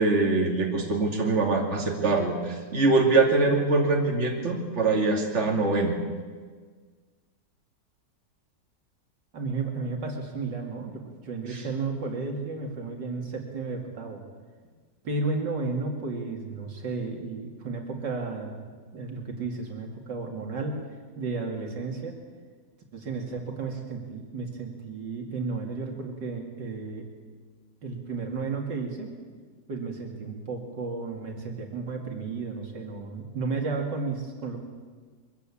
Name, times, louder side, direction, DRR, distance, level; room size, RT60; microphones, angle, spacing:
voice 1, 0.0-5.9 11.5-11.6, right 3 dB, 40° right, 1 dB, 2.9 m, -23 dB
voice 2, 9.3-14.2 15.0-18.6 18.9-20.9 21.2-22.2 22.9-27.1 27.8-29.1 29.7-34.6, right 4 dB, 75° right, 2 dB, 3.1 m, -33 dB
23.0 x 15.0 x 8.6 m, 1.5 s
omnidirectional pair, 1.9 m